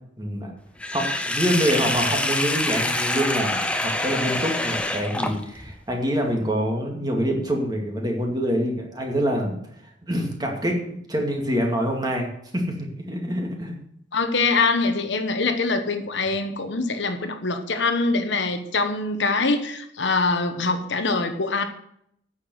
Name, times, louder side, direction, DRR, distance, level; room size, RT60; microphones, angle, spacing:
voice 1, 0.2-0.5 0.9-9.6 10.1-12.3 12.5-13.7, equal, 20° right, 1 dB, 2.2 m, -26 dB
Sink (filling or washing), 0.8-5.7, left 1 dB, 5° left, 0.8 m, -26 dB
voice 2, 14.1-21.7, left 3 dB, 70° left, 7 dB, 1.1 m, -24 dB
9.3 x 7.0 x 7.8 m, 0.72 s
head